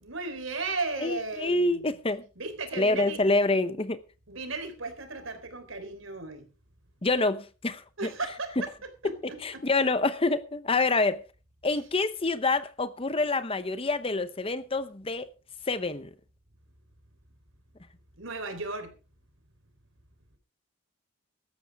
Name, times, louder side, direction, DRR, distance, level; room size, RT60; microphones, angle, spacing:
voice 1, 0.0-2.0 2.4-3.2 4.3-6.5 8.0-9.7 18.2-18.9, right 3 dB, 75° right, 3.7 m, -35 dB
voice 2, 1.0-2.2 2.7-4.0 7.0-7.8 9.4-11.2 11.6-15.3 15.7-16.1, left 3 dB, 25° left, 0.8 m, -27 dB
17.0 x 13.5 x 3.5 m
head